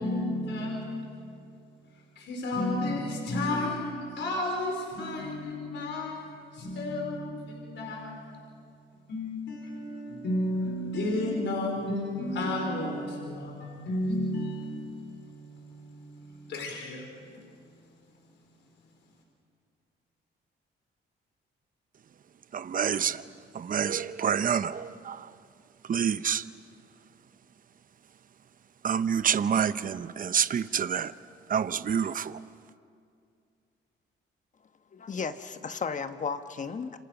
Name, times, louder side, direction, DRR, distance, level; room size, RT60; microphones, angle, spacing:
voice 1, 0.0-1.4 1.9-8.4 9.1-17.7, left 1 dB, 65° left, 4.6 m, -33 dB
voice 2, 22.5-23.2 23.5-25.3 25.9-26.5 28.8-31.1 31.5-32.4, right 7 dB, 45° right, 0.8 m, -27 dB
voice 3, 34.9-37.0, left 5 dB, 40° left, 1.3 m, -34 dB
28.5 x 26.5 x 6.1 m
cardioid pair, 90°, 20 cm